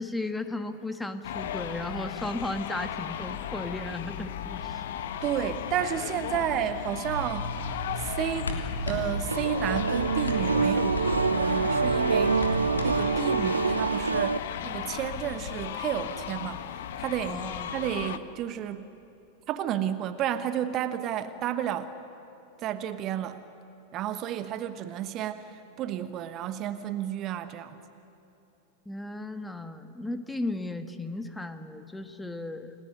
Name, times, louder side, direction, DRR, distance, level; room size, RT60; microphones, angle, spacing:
voice 1, 0.0-4.8 17.3-17.7 28.8-32.7, left 2 dB, 5° left, 8 dB, 1.5 m, -35 dB
sound 1, 1.2-18.2, left 9 dB, 55° left, 1.1 m, -36 dB
voice 2, 5.2-7.5 8.0-8.6 8.9-12.4 12.8-17.4 17.7-18.9 19.5-21.9 22.6-23.4 23.9-25.5 25.8-27.8, right 10 dB, 35° right, 11 dB, 1.1 m, -32 dB
sound 2, 7.0-13.1, left 1 dB, 75° left, 3.3 m, -34 dB
sound 3, 9.3-14.4, right 4 dB, 75° right, 0.6 m, -26 dB
30.0 x 19.0 x 9.3 m, 2.7 s
figure-of-eight pair, 90°, 0 cm